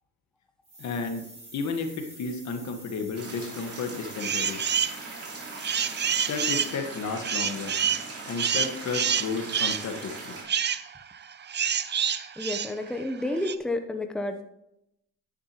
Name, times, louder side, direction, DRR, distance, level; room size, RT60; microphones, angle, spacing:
sound 1, 0.6-7.1, right 2 dB, 20° right, 2.8 m, -48 dB
voice 1, 0.8-4.6 6.2-7.7 8.3-10.3, left 4 dB, 65° left, 5 dB, 1.6 m, -33 dB
sound 2, 3.1-10.4, right 3 dB, 50° right, 3.4 m, -40 dB
sound 3, 4.2-5.0 5.4-13.5, right 8 dB, 35° right, 0.6 m, -28 dB
voice 2, 12.4-14.4, left 1 dB, 5° left, 5 dB, 0.8 m, -30 dB
10.0 x 9.4 x 3.0 m, 0.83 s
cardioid pair, 90°, 30 cm